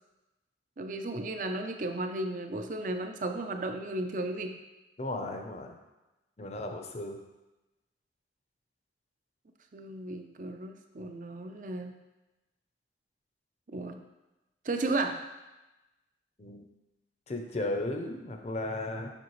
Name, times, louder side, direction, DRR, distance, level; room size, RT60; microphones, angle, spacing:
voice 1, 0.8-4.5 9.7-11.9 13.7-14.0 14.6-15.2, right 2 dB, 45° right, 6 dB, 0.5 m, -34 dB
voice 2, 5.0-5.7 6.4-7.2 16.4-16.6 17.3-19.1, left 2 dB, 35° left, 4 dB, 0.7 m, -35 dB
7.5 x 5.7 x 3.1 m, 1.0 s
head